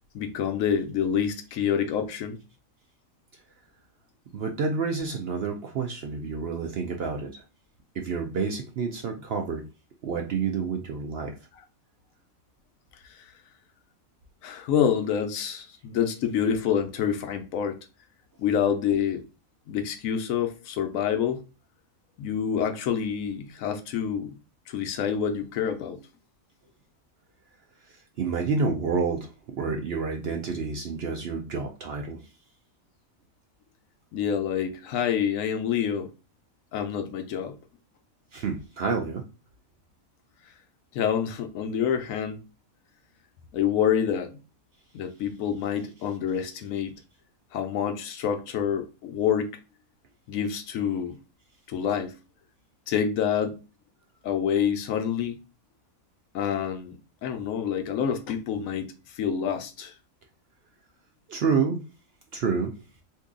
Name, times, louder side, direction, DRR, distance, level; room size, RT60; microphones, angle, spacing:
voice 1, 0.1-2.4 13.1-13.2 14.4-17.8 18.4-19.2 19.7-21.4 22.2-24.4 24.7-26.0 34.1-36.1 36.7-37.5 40.9-42.4 43.5-44.3 44.9-46.9 47.5-49.6 50.3-51.2 51.7-52.1 52.9-53.6 54.2-55.4 56.3-57.0 57.2-59.9, left 8 dB, 75° left, 1.0 m, -27 dB
voice 2, 4.3-7.4 7.9-9.6 10.0-11.3 27.9-32.2 38.3-39.2 61.3-61.8 62.3-62.7, right 5 dB, 65° right, 0.6 m, -29 dB
2.7 x 2.7 x 3.6 m
omnidirectional pair, 1.5 m